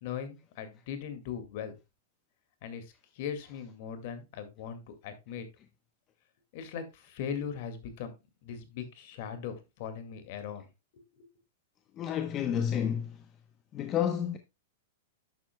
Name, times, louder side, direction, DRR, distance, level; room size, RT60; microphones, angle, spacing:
voice 1, 0.0-1.7 2.6-5.5 6.5-8.1 8.4-10.7 10.9-11.3, left 7 dB, 55° left, 2.1 m, -39 dB
voice 2, 12.0-13.2 13.7-14.4, left 9 dB, 30° left, 0.8 m, -30 dB
11.0 x 7.3 x 2.2 m
hypercardioid pair, 115°, 0 cm